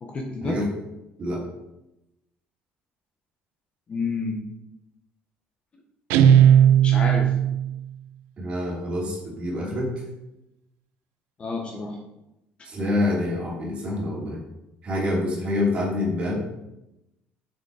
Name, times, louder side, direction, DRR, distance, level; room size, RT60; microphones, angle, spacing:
voice 1, 0.0-0.6 3.9-4.4 6.8-7.3 11.4-12.0, left 3 dB, 25° left, 1 dB, 1.2 m, -29 dB
Guitar, 6.1-7.8, right 9 dB, 85° right, 0.5 m, -16 dB
voice 2, 8.4-9.9 12.6-14.4 14.8-16.4, left 1 dB, 30° right, -3 dB, 2.9 m, -26 dB
6.8 x 6.2 x 4.8 m, 0.89 s
cardioid pair, 150°, 4 cm